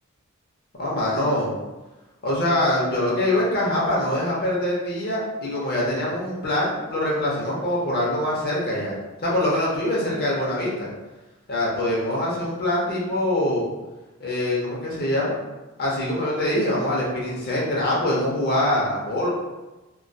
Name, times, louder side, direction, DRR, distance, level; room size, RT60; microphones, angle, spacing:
voice 1, 0.8-1.5 2.2-8.9 9.2-10.9 11.5-13.7 14.2-15.4 15.8-19.3, left 1 dB, 50° left, -4 dB, 0.6 m, -24 dB
2.2 x 2.2 x 2.6 m, 1.1 s
head